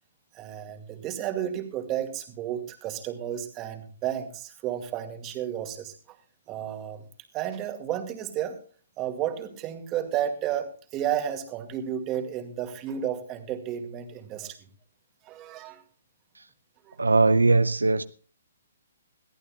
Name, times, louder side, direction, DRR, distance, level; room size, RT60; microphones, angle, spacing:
voice 1, 0.3-6.2 6.5-7.0 7.3-8.6 9.0-14.7 15.2-15.8 16.8-17.0, right 10 dB, 25° right, 6 dB, 2.2 m, -32 dB
voice 2, 17.0-18.0, right 3 dB, 85° right, 12 dB, 0.6 m, -20 dB
21.5 x 14.5 x 2.3 m, 0.40 s
figure-of-eight pair, 130°, 0 cm